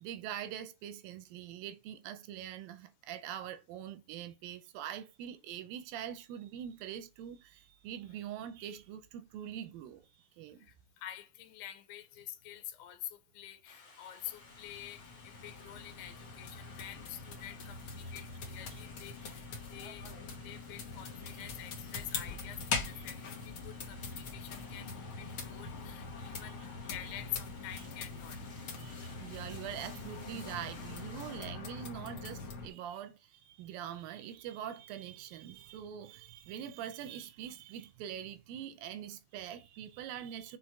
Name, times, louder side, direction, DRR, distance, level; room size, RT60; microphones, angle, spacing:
voice 1, 0.0-10.0 10.4-10.7 21.4-21.5 26.4-26.5 28.8-40.6, right 10 dB, 80° right, 2.3 m, -44 dB
voice 2, 10.6-19.5 19.7-20.1 20.4-28.4, left 12 dB, 90° left, 2.7 m, -47 dB
sound 1, 13.6-31.4, left 3 dB, 35° left, 2.6 m, -56 dB
sound 2, 14.2-32.7, left 4 dB, 65° left, 1.3 m, -43 dB
6.3 x 4.0 x 4.8 m
omnidirectional pair, 4.4 m